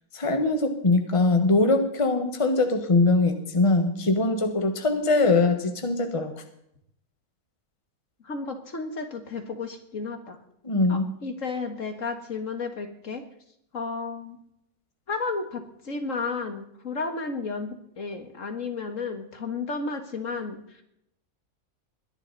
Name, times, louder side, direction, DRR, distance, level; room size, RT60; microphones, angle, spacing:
voice 1, 0.1-6.4 10.6-11.1, left 3 dB, 20° left, 6 dB, 1.5 m, -22 dB
voice 2, 8.2-10.4 10.9-13.2 13.7-14.4 15.1-20.8, left 4 dB, 60° left, 7 dB, 2.1 m, -33 dB
21.5 x 11.0 x 4.1 m, 0.74 s
omnidirectional pair, 1.5 m